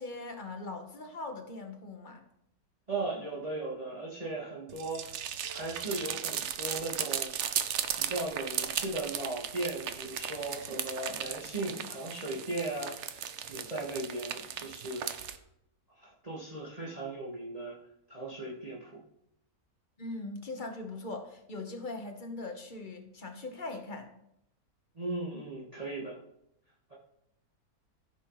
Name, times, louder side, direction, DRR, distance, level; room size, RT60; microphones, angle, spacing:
voice 1, 0.0-2.2 20.0-24.1, left 2 dB, 35° left, 5 dB, 1.1 m, -40 dB
voice 2, 2.9-15.0 15.9-17.8 18.1-19.0 24.9-26.2 26.9-27.0, right 2 dB, 25° right, -4 dB, 1.4 m, -37 dB
sound 1, 4.7-15.4, right 9 dB, 60° right, 0.8 m, -36 dB
15.0 x 6.2 x 3.1 m, 0.79 s
omnidirectional pair, 1.6 m